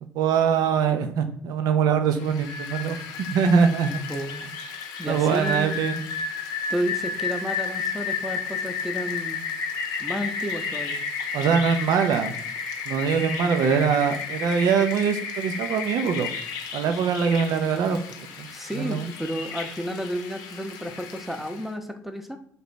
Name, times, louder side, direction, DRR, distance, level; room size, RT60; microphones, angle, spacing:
voice 1, 0.1-3.0 3.3-4.0 5.1-6.1 11.3-12.4 12.9-16.3 16.7-18.0 18.4-18.5 18.7-19.1, right 6 dB, 65° right, 7 dB, 0.5 m, -23 dB
Rain, 2.2-21.7, left 5 dB, 70° left, 0.6 m, -32 dB
voice 2, 4.1-4.5 5.0-5.8 6.7-9.5 10.0-11.0 18.5-22.4, equal, 5° right, 6 dB, 0.7 m, -31 dB
3.4 x 2.9 x 4.1 m, 0.63 s
hypercardioid pair, 55°, 7 cm